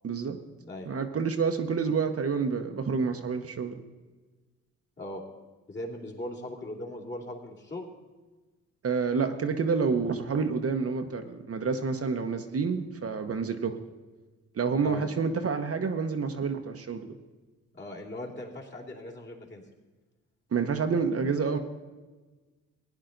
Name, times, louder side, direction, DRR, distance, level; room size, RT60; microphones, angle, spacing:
voice 1, 0.0-0.4 0.9-3.8 8.8-13.8 14.5-17.1 20.5-21.6, right 5 dB, 45° right, 6 dB, 1.0 m, -28 dB
voice 2, 5.7-7.9 14.8-15.1 17.7-19.6, left 1 dB, 35° left, -3 dB, 2.9 m, -39 dB
16.5 x 9.9 x 3.9 m, 1.3 s
cardioid pair, 75°, 32 cm